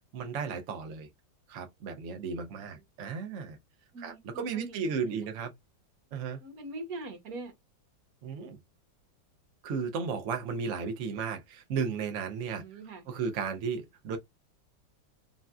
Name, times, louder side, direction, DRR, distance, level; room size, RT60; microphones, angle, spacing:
voice 1, 0.1-1.1 1.5-3.6 4.0-5.5 6.1-6.4 8.2-8.6 9.6-12.6 13.1-14.2, right 5 dB, 80° right, 0.6 m, -34 dB
voice 2, 3.9-5.3 6.4-7.5 12.6-13.2, right 2 dB, 55° right, 1.3 m, -43 dB
3.9 x 2.1 x 2.3 m
omnidirectional pair, 2.0 m